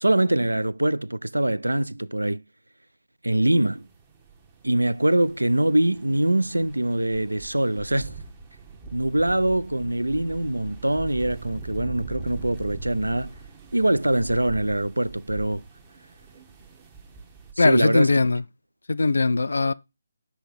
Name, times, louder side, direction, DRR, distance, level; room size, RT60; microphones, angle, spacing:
voice 1, 0.0-2.4 3.2-3.8 4.6-8.2 8.9-13.3 13.7-15.6 17.6-18.1, right 1 dB, 80° right, 0.3 m, -23 dB
sound 1, 3.8-17.5, right 5 dB, 20° right, 1.0 m, -42 dB
voice 2, 17.6-18.4 18.9-19.7, left 3 dB, 65° left, 0.3 m, -20 dB
5.7 x 4.3 x 5.3 m
figure-of-eight pair, 150°, 0 cm